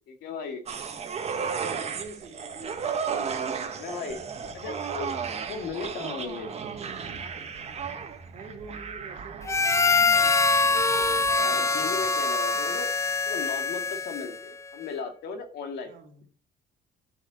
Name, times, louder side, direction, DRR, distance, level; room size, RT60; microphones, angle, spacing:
voice 1, 0.2-0.6 3.8-5.1 5.5-6.5 11.4-12.9 13.3-15.9, left 5 dB, 75° left, 2.3 m, -36 dB
sound 1, 0.7-12.2 12.5-12.6, right 6 dB, 40° right, 1.9 m, -35 dB
voice 2, 1.2-3.0 5.9-6.1 8.3-10.6 15.8-16.2, right 4 dB, 55° right, 3.1 m, -46 dB
sound 2, 4.1-11.5, right 2 dB, 70° right, 2.8 m, -50 dB
Harmonica, 9.5-14.5, left 4 dB, 15° left, 0.6 m, -24 dB
9.9 x 6.0 x 6.8 m
cardioid pair, 110°, 17 cm